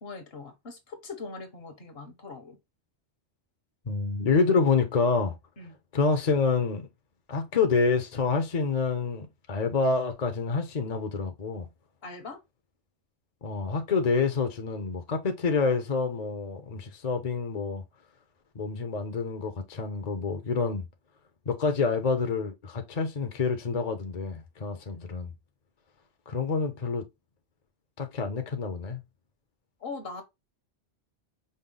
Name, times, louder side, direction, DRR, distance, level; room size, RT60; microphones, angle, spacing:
voice 1, 0.0-2.6 5.6-5.8 12.0-12.4 24.9-25.1 29.8-30.2, left 4 dB, 60° left, 1.3 m, -41 dB
voice 2, 3.9-5.3 5.9-6.9 7.3-11.7 13.4-17.8 18.6-20.8 21.5-25.3 26.3-27.0 28.0-29.0, left 4 dB, 45° left, 0.7 m, -27 dB
5.3 x 2.2 x 3.8 m
omnidirectional pair, 1.1 m